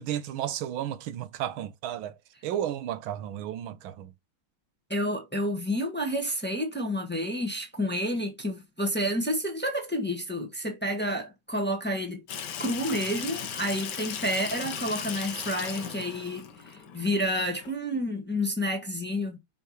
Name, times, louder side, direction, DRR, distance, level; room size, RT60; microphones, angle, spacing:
voice 1, 0.0-2.2 2.4-4.1, right 11 dB, 80° right, 1.5 m, -33 dB
voice 2, 4.9-12.2 12.6-19.4, equal, 5° left, 1.4 m, -30 dB
Water tap faucet / Sink (filling or washing), 12.3-17.7, left 7 dB, 60° left, 1.5 m, -37 dB
5.7 x 5.6 x 3.1 m
omnidirectional pair, 2.2 m